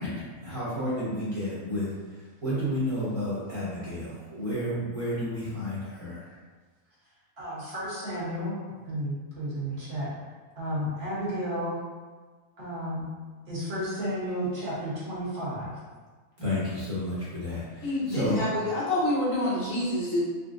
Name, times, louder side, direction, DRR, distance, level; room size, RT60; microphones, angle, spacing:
voice 1, 0.0-6.4 16.4-18.4, left 1 dB, 30° right, -11 dB, 0.8 m, -31 dB
voice 2, 7.4-8.6 8.8-10.1 10.6-11.8 12.6-13.1 13.5-15.7 18.0-18.5, equal, 50° right, -8 dB, 1.1 m, -32 dB
voice 3, 17.8-20.2, left 1 dB, 70° left, -6 dB, 1.1 m, -27 dB
3.7 x 2.0 x 2.5 m, 1.4 s
omnidirectional pair, 1.4 m